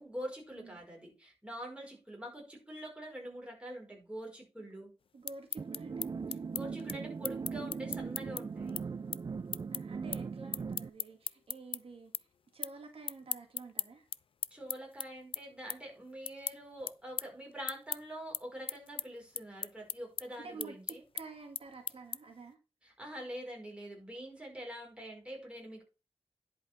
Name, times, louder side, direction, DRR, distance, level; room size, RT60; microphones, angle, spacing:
voice 1, 0.0-4.9 6.5-8.8 14.5-21.0 22.8-25.8, equal, 10° right, 0 dB, 5.0 m, -45 dB
sound 1, 5.1-11.8 12.1-12.8 13.0-22.4, left 7 dB, 60° left, 0.4 m, -39 dB
voice 2, 5.1-6.1 9.7-12.3 12.5-14.0 20.4-20.8 21.1-22.6, right 4 dB, 65° right, 3 dB, 2.1 m, -50 dB
sound 2, 5.6-10.9, right 5 dB, 40° right, 0.4 m, -40 dB
10.5 x 5.1 x 5.7 m, 0.30 s
wide cardioid pair, 105°, 10 cm